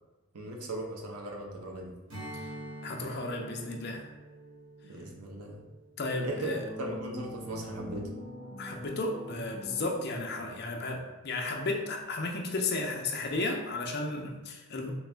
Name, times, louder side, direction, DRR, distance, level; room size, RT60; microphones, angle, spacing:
voice 1, 0.3-1.9 4.8-5.6 6.2-8.1, right 1 dB, 85° right, 0 dB, 0.7 m, -38 dB
Strum, 2.1-6.9, right 1 dB, 65° right, 1.4 m, -46 dB
voice 2, 2.8-4.1 6.0-6.6 8.6-14.9, left 2 dB, 45° left, 2 dB, 0.5 m, -33 dB
sound 1, 6.1-10.6, left 1 dB, 25° right, 1.0 m, -44 dB
4.0 x 2.5 x 3.3 m, 1.1 s
head